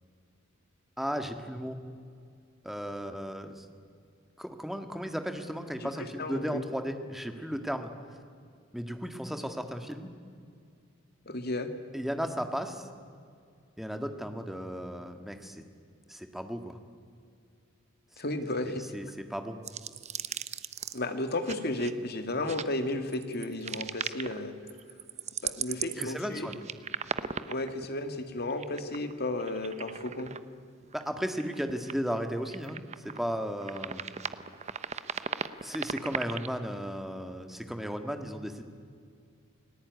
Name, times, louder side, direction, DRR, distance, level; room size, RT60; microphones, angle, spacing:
voice 1, 1.0-1.8 2.6-3.7 4.4-7.9 8.7-10.1 11.9-12.9 13.8-15.6 16.1-16.8 18.9-19.6 26.0-26.5 30.9-34.1 35.6-38.6, equal, ahead, 6 dB, 1.8 m, -35 dB
voice 2, 5.8-6.6 11.3-11.7 18.2-18.8 20.9-24.6 25.4-26.5 27.2-30.3, left 2 dB, 50° left, 7 dB, 2.2 m, -33 dB
sound 1, 19.6-21.0 21.4-21.9 22.5-22.6 23.1-24.4 24.7-27.8 28.5-29.1 29.4-30.4 30.8-31.1 31.4-32.2 32.5-33.2 33.6-36.5, right 7 dB, 35° right, 0.9 m, -37 dB
29.5 x 19.5 x 9.5 m, 2.3 s
head